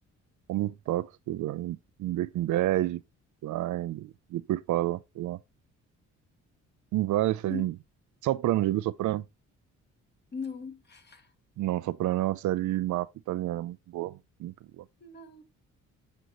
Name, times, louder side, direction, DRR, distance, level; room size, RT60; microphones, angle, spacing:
voice 1, 0.5-3.0 3.4-5.4 6.9-7.7 8.2-9.2 11.6-14.8, right 14 dB, 75° right, 0.5 m, -29 dB
voice 2, 10.3-11.3 15.0-15.4, left 5 dB, 35° left, 1.8 m, -39 dB
7.9 x 5.4 x 3.0 m
cardioid pair, 90°, 30 cm